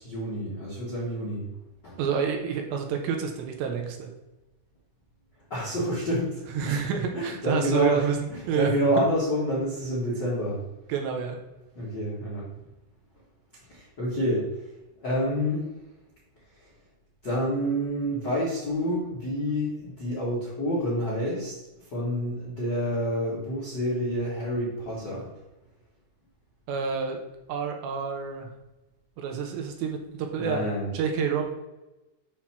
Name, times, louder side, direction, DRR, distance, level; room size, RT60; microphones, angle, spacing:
voice 1, 0.0-1.5 1.8-2.0 5.5-10.6 11.7-12.5 13.7-14.5 15.0-15.7 16.6-16.7 17.2-21.5 21.9-25.3 30.4-30.9, equal, 75° left, -7 dB, 0.9 m, -28 dB
voice 2, 2.0-4.1 6.5-9.1 10.9-11.4 26.7-27.2 27.5-28.5 29.2-30.7 30.9-31.4, right 7 dB, 80° right, 3 dB, 3.0 m, -28 dB
8.6 x 2.9 x 5.8 m, 1.0 s
omnidirectional pair, 5.3 m